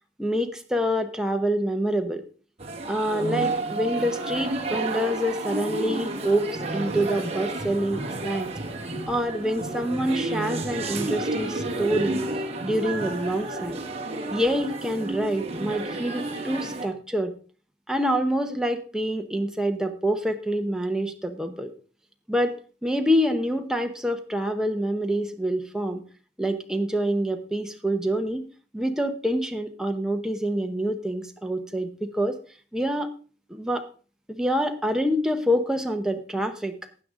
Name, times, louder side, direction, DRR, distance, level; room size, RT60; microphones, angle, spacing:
voice 1, 0.2-2.2 2.8-8.5 9.1-12.2 12.6-13.8 14.3-17.3 17.9-21.7 22.3-22.6 22.8-26.0 26.4-28.5 28.7-32.4 32.7-33.1 33.5-33.9 34.3-36.7, equal, 5° right, 5 dB, 0.9 m, -26 dB
sound 1, 2.6-16.9, right 2 dB, 35° right, 1.5 m, -31 dB
12.5 x 8.6 x 3.7 m, 0.38 s
head